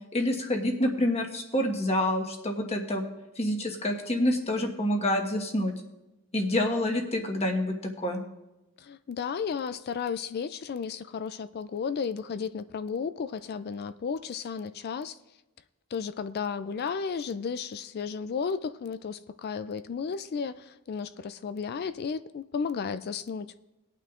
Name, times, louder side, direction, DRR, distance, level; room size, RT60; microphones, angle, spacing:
voice 1, 0.1-3.0 3.4-5.7 6.3-7.7 8.0-8.2, left 1 dB, 30° left, 1.4 m, -27 dB
voice 2, 8.8-15.2 15.9-23.5, left 6 dB, 45° left, 0.3 m, -33 dB
19.5 x 9.1 x 2.5 m
head